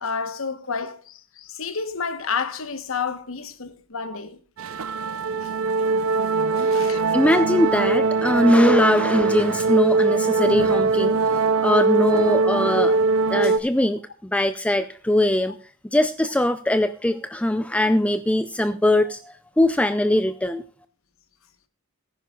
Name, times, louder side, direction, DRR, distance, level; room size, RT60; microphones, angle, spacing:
voice 1, 0.0-4.4 5.4-5.5 6.6-7.0 13.4-13.6 18.6-18.7, left 5 dB, 75° left, 1.2 m, -30 dB
sound 1, 4.6-13.6, right 4 dB, 80° right, 0.6 m, -21 dB
voice 2, 7.1-11.2 11.6-13.0 13.3-15.6 15.9-20.6, left 1 dB, 5° left, 0.4 m, -21 dB
19.0 x 10.0 x 2.4 m
head